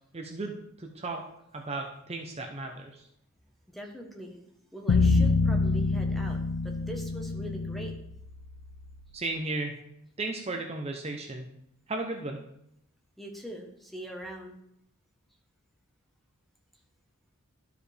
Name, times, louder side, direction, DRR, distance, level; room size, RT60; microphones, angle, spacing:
voice 1, 0.1-1.3 1.5-2.9 9.1-9.8 10.2-11.4 11.9-12.4, right 2 dB, 30° right, 2 dB, 0.7 m, -35 dB
voice 2, 3.7-4.4 4.7-7.9 13.2-14.6, right 1 dB, ahead, 1 dB, 1.0 m, -42 dB
sound 1, 4.9-9.1, left 3 dB, 80° left, 0.5 m, -27 dB
12.5 x 4.9 x 3.4 m, 0.79 s
head